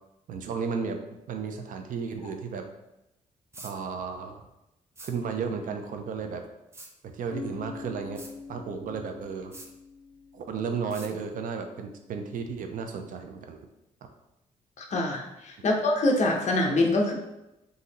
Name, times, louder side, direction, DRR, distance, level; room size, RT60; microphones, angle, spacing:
voice 1, 0.3-1.0 1.3-2.6 3.6-4.4 5.0-6.4 7.0-8.2 8.5-9.6 10.3-13.7, right 5 dB, 70° right, 5 dB, 0.6 m, -33 dB
sound 1, 3.5-3.7 5.0-5.1 6.7-6.9 8.2-8.3 9.5-9.7 10.9-11.1, right 2 dB, 20° right, 0.6 m, -44 dB
Bass guitar, 7.3-11.1, left 5 dB, 85° left, 0.6 m, -44 dB
voice 2, 14.8-17.1, left 2 dB, 55° left, 1 dB, 0.8 m, -25 dB
3.8 x 2.7 x 4.1 m, 0.93 s
cardioid pair, 115°, 14 cm